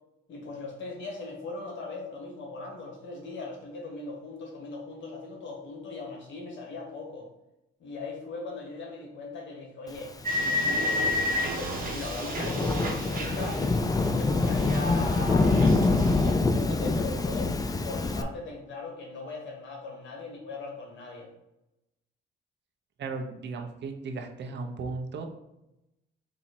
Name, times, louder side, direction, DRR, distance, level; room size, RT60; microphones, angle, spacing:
voice 1, 0.3-7.3 7.8-10.1 10.4-11.0 11.5-13.7 14.1-17.6 17.8-21.3, left 3 dB, 70° left, 0 dB, 1.5 m, -39 dB
sound 1, 10.2-14.2 14.4-16.3, left 1 dB, 45° right, 1.2 m, -31 dB
Thunderstorm / Rain, 10.5-18.2, left 3 dB, 20° left, 0.4 m, -26 dB
voice 2, 23.0-25.3, right 3 dB, 60° right, 3 dB, 0.9 m, -36 dB
4.2 x 3.0 x 4.2 m, 0.91 s
cardioid pair, 90°, 20 cm